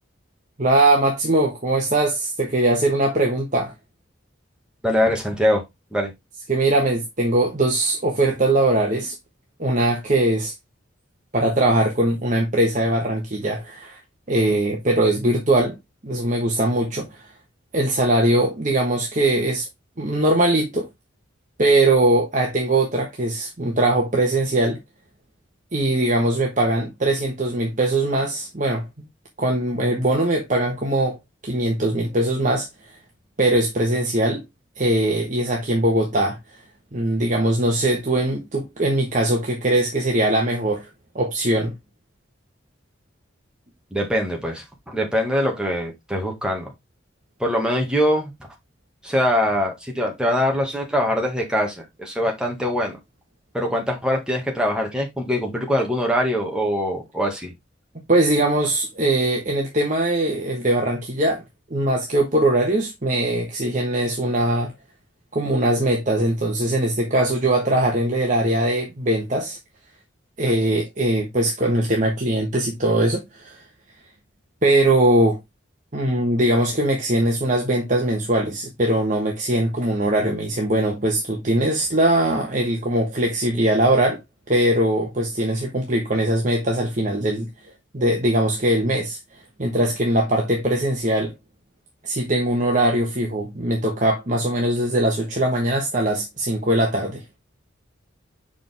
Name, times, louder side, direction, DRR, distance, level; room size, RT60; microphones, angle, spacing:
voice 1, 0.6-3.7 6.5-9.1 9.6-10.5 11.3-14.0 14.3-15.8 16.0-17.2 17.7-19.7 20.0-20.9 21.6-24.8 25.7-28.9 29.4-31.2 31.4-32.7 33.4-34.4 34.8-36.4 36.9-40.9 41.1-41.7 58.1-61.4 61.7-64.7 65.3-69.6 70.4-73.6 74.6-75.4 75.9-84.2 84.5-87.5 87.9-89.2 89.6-91.3 92.0-97.2, right 1 dB, 40° right, 1.2 m, -21 dB
voice 2, 4.8-5.6 5.9-6.1 43.9-46.7 47.4-48.3 49.0-53.0 53.5-57.5, equal, 5° right, 1.7 m, -23 dB
6.1 x 5.0 x 3.4 m
head